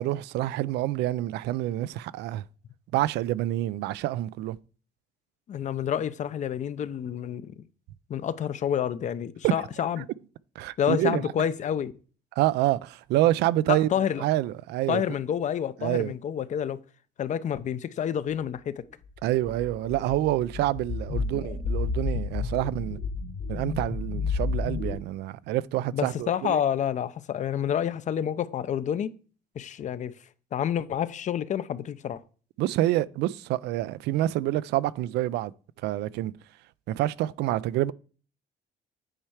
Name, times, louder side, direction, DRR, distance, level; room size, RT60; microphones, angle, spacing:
voice 1, 0.0-2.4 2.9-4.6 9.4-9.5 10.0-10.1 10.6-11.2 12.4-13.9 14.2-15.0 15.8-16.1 19.2-23.0 23.5-26.6 32.6-35.5 35.8-36.3 36.9-37.9, right 15 dB, 80° right, 0.4 m, -27 dB
voice 2, 5.5-7.5 8.1-10.1 10.8-11.9 13.7-14.2 14.9-16.8 17.2-18.8 21.1-21.2 25.9-29.1 29.6-30.1 30.5-32.2, left 9 dB, 45° left, 0.6 m, -28 dB
sound 1, 19.2-24.9, left 4 dB, 85° left, 2.5 m, -31 dB
8.9 x 4.4 x 4.9 m
cardioid pair, 110°, 17 cm